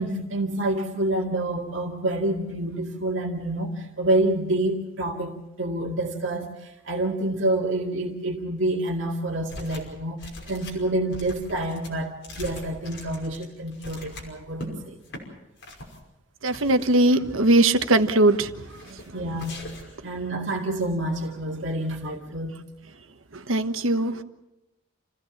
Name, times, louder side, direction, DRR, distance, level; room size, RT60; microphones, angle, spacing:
voice 1, 0.0-15.0 19.1-19.5 20.0-22.6, right 1 dB, 65° right, 0 dB, 2.2 m, -28 dB
sound 1, 9.5-9.9 10.2-14.7 15.0-15.2 15.6-16.0 16.5-17.2 17.6-18.2 18.7-19.1 19.4-20.0, left 1 dB, 60° left, 5.6 m, -42 dB
voice 2, 16.4-18.5 23.5-24.1, right 2 dB, 85° right, 9 dB, 1.3 m, -20 dB
28.5 x 16.0 x 7.3 m, 0.96 s
head